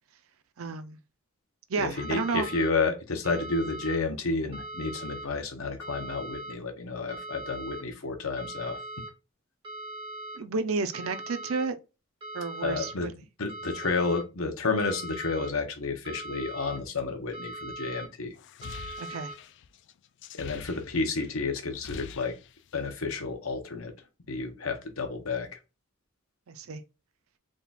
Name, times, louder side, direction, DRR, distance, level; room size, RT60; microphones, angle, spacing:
voice 1, 0.6-1.0 1.7-2.5 10.4-11.7 12.3-13.1 19.0-19.3 26.5-26.8, right 4 dB, 85° right, 0.5 m, -31 dB
voice 2, 1.8-8.8 12.6-13.1 13.4-18.3 20.3-22.3 22.7-23.9 24.3-25.6, left 3 dB, 80° left, 0.9 m, -31 dB
sound 1, 2.0-2.7 3.2-4.0 4.5-5.3 5.8-6.5 7.1-7.8 8.4-9.1 9.6-10.4 10.9-11.7 12.2-12.9 13.5-14.2 14.8-15.5 16.0-16.8 17.3-18.1 18.6-19.3, right 1 dB, 25° right, 1.4 m, -40 dB
sound 2, 18.4-21.3 21.6-23.0, left 6 dB, 60° left, 0.3 m, -45 dB
3.7 x 2.3 x 4.1 m
head